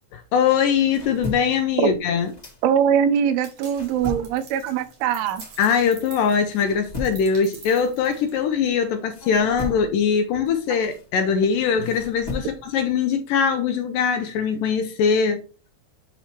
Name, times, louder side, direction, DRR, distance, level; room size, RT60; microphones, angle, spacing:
voice 1, 0.1-2.3 5.6-15.4, left 6 dB, 75° left, 2.1 m, -22 dB
sound 1, 0.6-3.1 3.4-8.7 9.1-12.8, left 2 dB, 45° left, 0.5 m, -38 dB
voice 2, 2.6-5.5, right 8 dB, 85° right, 2.6 m, -22 dB
sound 2, 3.4-8.7, right 5 dB, 50° right, 2.3 m, -46 dB
8.1 x 3.1 x 4.2 m
omnidirectional pair, 4.4 m